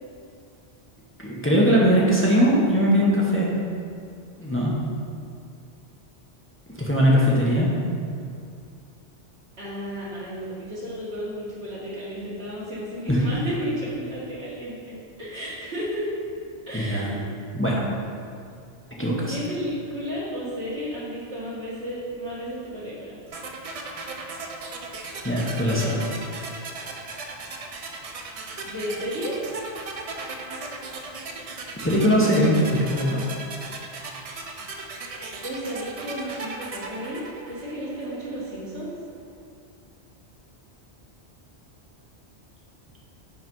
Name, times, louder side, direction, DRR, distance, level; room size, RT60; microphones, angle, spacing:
voice 1, 1.2-3.5 4.4-4.7 6.8-7.7 13.1-13.2 16.7-17.2 17.5-17.8 19.0-19.3 25.2-26.0 31.8-33.3, equal, 10° left, -5 dB, 0.9 m, -20 dB
voice 2, 9.6-16.1 16.7-17.2 19.0-23.2 25.6-25.9 28.6-29.4 34.8-34.9 35.4-38.9, equal, 75° right, -8 dB, 2.1 m, -33 dB
sound 1, 23.3-38.2, right 3 dB, 50° right, 0.4 m, -37 dB
5.7 x 4.0 x 5.3 m, 2.4 s
omnidirectional pair, 1.1 m